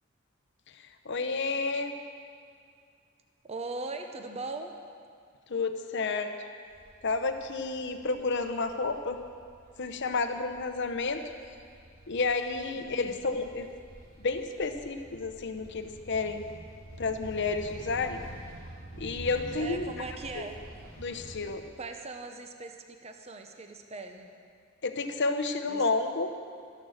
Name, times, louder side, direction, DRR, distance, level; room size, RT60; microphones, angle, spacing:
voice 1, 1.0-1.9 5.5-6.3 7.0-9.2 9.8-11.2 12.1-13.7 14.2-16.4 17.0-18.2 19.0-19.9 20.3-20.5 21.0-21.6 24.8-26.3, left 3 dB, 60° left, 7 dB, 0.8 m, -30 dB
voice 2, 3.4-4.7 12.8-13.2 19.6-20.6 21.8-24.3 25.7-25.9, right 3 dB, 30° right, 5 dB, 0.8 m, -40 dB
sound 1, 6.7-21.6, equal, 75° right, 2.9 m, -48 dB
12.5 x 11.0 x 6.5 m, 2.3 s
head